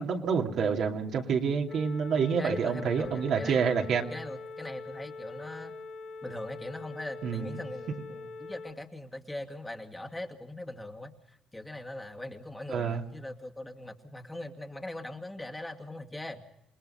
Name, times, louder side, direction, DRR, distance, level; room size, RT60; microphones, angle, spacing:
voice 1, 0.0-4.1 7.2-7.5 12.7-13.0, right 6 dB, 65° right, 1 dB, 2.7 m, -28 dB
sound 1, 1.7-8.7, left 3 dB, 60° left, 5.7 m, -43 dB
voice 2, 2.1-3.8 4.1-5.7 6.2-16.4, left 1 dB, 10° left, 3 dB, 2.3 m, -41 dB
28.5 x 20.0 x 5.8 m, 0.80 s
cardioid pair, 80°, 0 cm